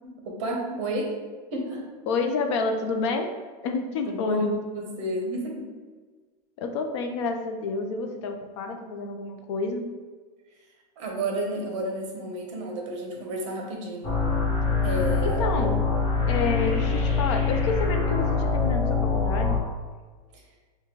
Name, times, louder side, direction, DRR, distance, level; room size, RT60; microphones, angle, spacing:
voice 1, 0.0-1.1 1.5-1.9 4.1-4.5 4.7-5.7 11.0-14.1 14.8-15.4 20.3-20.4, right 1 dB, 50° right, 1 dB, 0.8 m, -31 dB
voice 2, 2.1-3.3 3.6-4.6 6.6-9.9 15.2-15.8 16.3-19.6, left 4 dB, 45° left, 5 dB, 0.4 m, -29 dB
sound 1, 14.0-19.6, left 4 dB, 25° left, 0.8 m, -24 dB
5.0 x 2.2 x 3.0 m, 1.4 s
supercardioid pair, 170°, 21 cm